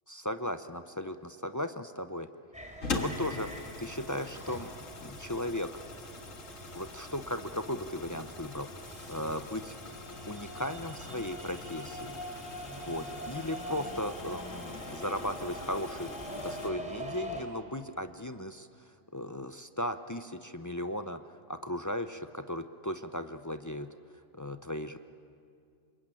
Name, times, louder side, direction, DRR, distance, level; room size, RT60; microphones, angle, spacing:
voice 1, 0.1-2.3 2.9-3.5 3.8-4.7 5.0-5.7 6.8-9.8 10.3-12.2 12.8-16.1 16.4-23.9 24.3-25.0, left 1 dB, 25° left, 9 dB, 0.4 m, -36 dB
sound 1, 2.5-17.4, equal, 5° right, 3.2 m, -44 dB
sound 2, 2.8-16.7, left 3 dB, 80° left, 2.1 m, -43 dB
26.0 x 22.0 x 9.0 m, 2.4 s
omnidirectional pair, 1.3 m